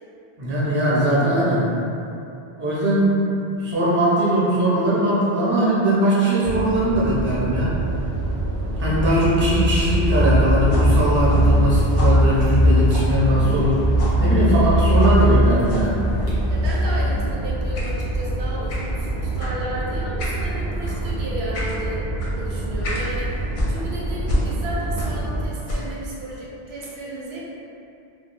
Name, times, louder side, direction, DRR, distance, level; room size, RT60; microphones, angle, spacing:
voice 1, 0.4-1.7 2.6-3.2 3.5-7.7 8.8-13.8 14.2-16.0, right 1 dB, 15° right, -8 dB, 0.4 m, -20 dB
sound 1, 6.4-25.5, right 2 dB, 60° right, 0.6 m, -27 dB
Car, 7.8-17.3, equal, 15° left, 0.8 m, -20 dB
sound 2, 10.7-13.7 14.0-14.2 15.0-15.2 15.7-15.9 16.6-16.9 17.7-17.9 18.7-18.9 19.4-19.6 20.2-20.4 20.8-21.0 21.5-21.8 22.2-22.3 22.8-23.1 23.5-25.3 25.6-26.0, left 1 dB, 60° left, 0.6 m, -30 dB
voice 2, 16.5-27.5, right 1 dB, 90° right, -6 dB, 0.9 m, -33 dB
2.3 x 2.2 x 3.1 m, 2.7 s
omnidirectional pair, 1.0 m